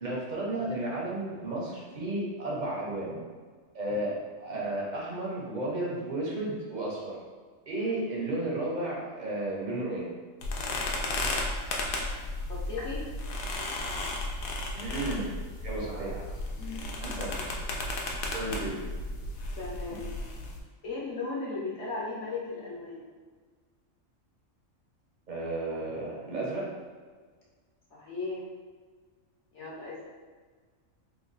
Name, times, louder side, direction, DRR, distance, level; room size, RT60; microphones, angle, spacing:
voice 1, 0.0-3.2 3.7-7.2 7.7-10.1 14.7-15.3 15.6-16.3 17.0-17.4 18.3-18.8 25.3-26.7, right 2 dB, 45° right, -4 dB, 0.6 m, -33 dB
sound 1, 10.4-20.6, left 2 dB, 90° left, 1.0 m, -34 dB
voice 2, 12.5-13.1 16.6-17.0 18.1-18.4 19.5-20.1 20.8-23.1 27.9-28.4 29.5-30.0, left 3 dB, 65° left, -6 dB, 1.0 m, -37 dB
2.9 x 2.2 x 3.9 m, 1.5 s
omnidirectional pair, 1.4 m